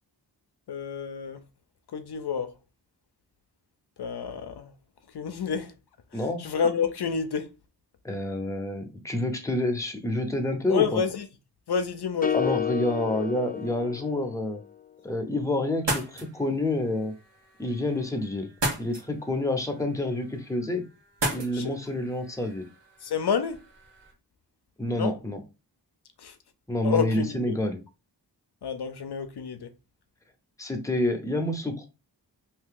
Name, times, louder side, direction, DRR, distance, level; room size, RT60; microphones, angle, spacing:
voice 1, 0.7-1.4 1.9-2.5 4.0-4.7 5.1-5.7 6.1-7.5 10.7-11.2 11.7-12.4 21.5-21.7 23.0-23.6 25.0-25.1 26.2-26.3 26.8-27.6 28.6-29.7, left 6 dB, 65° left, 0.6 m, -29 dB
voice 2, 8.0-11.0 12.3-14.6 15.0-17.1 17.6-18.5 18.8-20.8 21.3-22.7 24.8-25.4 26.7-27.8 30.6-31.9, left 1 dB, 10° left, 0.8 m, -28 dB
sound 1, 12.2-14.5, left 8 dB, 25° left, 0.3 m, -30 dB
sound 2, 15.7-24.1, right 2 dB, 85° right, 1.3 m, -36 dB
2.8 x 2.7 x 3.7 m
wide cardioid pair, 60°, 42 cm